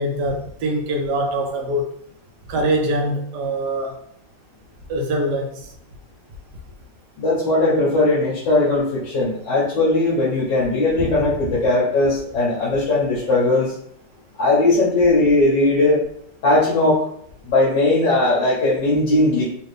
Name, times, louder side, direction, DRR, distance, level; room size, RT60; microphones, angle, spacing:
voice 1, 0.0-1.9 2.5-3.9 4.9-5.6, right 1 dB, 70° right, 1.2 m, -23 dB
voice 2, 7.2-13.7 14.4-16.0 16.4-17.0 17.4-19.4, left 2 dB, 75° left, 1.8 m, -18 dB
4.3 x 2.6 x 3.3 m
omnidirectional pair, 2.0 m